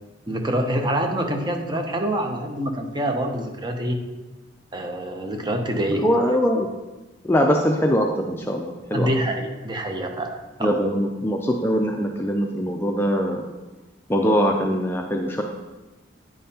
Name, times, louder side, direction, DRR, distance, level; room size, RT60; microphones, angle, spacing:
voice 1, 0.3-4.0 4.7-6.1 8.9-10.7, right 1 dB, 25° right, 4 dB, 0.7 m, -26 dB
voice 2, 6.0-6.7 7.3-9.1 10.6-13.5 14.1-15.4, equal, 10° left, 2 dB, 0.4 m, -22 dB
9.3 x 5.5 x 2.8 m, 1.1 s
head